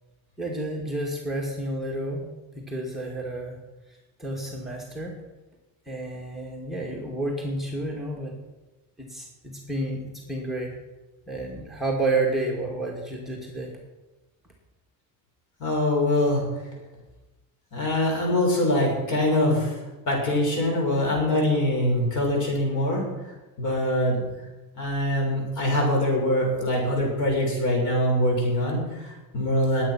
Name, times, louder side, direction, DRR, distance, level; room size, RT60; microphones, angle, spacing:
voice 1, 0.4-2.3 2.6-3.6 4.2-5.1 5.9-8.3 9.0-10.7 11.3-13.7, right 2 dB, ahead, -3 dB, 2.3 m, -30 dB
voice 2, 15.6-16.4 17.7-19.7 20.1-23.0 23.6-24.2 24.7-29.8, left 1 dB, 55° left, -1 dB, 6.7 m, -23 dB
20.0 x 8.9 x 6.1 m, 1.1 s
cardioid pair, 160°, 35 cm